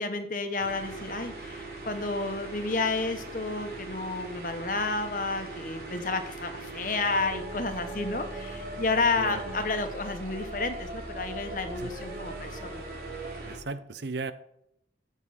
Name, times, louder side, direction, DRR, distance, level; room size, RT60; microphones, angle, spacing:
voice 1, 0.0-12.8, left 3 dB, 50° left, 7 dB, 1.4 m, -31 dB
sound 1, 0.6-13.6, right 2 dB, 65° right, 3.0 m, -40 dB
voice 2, 9.2-9.6 11.8-11.9 13.5-14.3, right 3 dB, 85° right, 13 dB, 0.8 m, -36 dB
13.5 x 8.0 x 4.3 m, 0.78 s
head